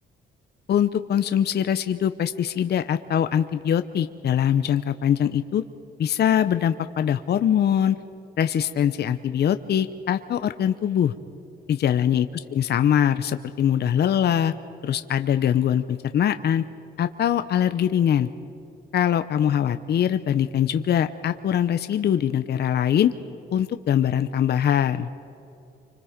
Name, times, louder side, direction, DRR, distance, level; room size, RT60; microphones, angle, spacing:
voice 1, 0.7-5.6 6.0-8.0 8.4-11.1 11.7-12.3 12.5-14.5 14.8-16.6 17.0-18.3 18.9-23.1 23.5-25.1, left 9 dB, 55° left, 10 dB, 0.8 m, -22 dB
28.5 x 25.5 x 5.1 m, 2.9 s
cardioid pair, 90°, 20 cm